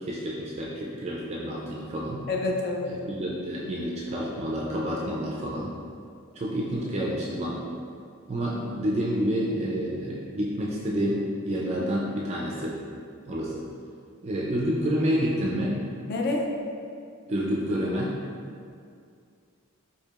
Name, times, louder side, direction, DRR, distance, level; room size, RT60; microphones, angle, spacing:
voice 1, 0.0-2.2 2.8-5.7 6.4-7.6 8.3-12.8 13.2-13.6 14.2-15.8 17.3-18.1, equal, 30° right, -4 dB, 0.3 m, -29 dB
voice 2, 2.3-2.9 16.1-16.4, left 2 dB, 45° left, 0 dB, 0.4 m, -27 dB
4.5 x 2.7 x 2.4 m, 2.3 s
head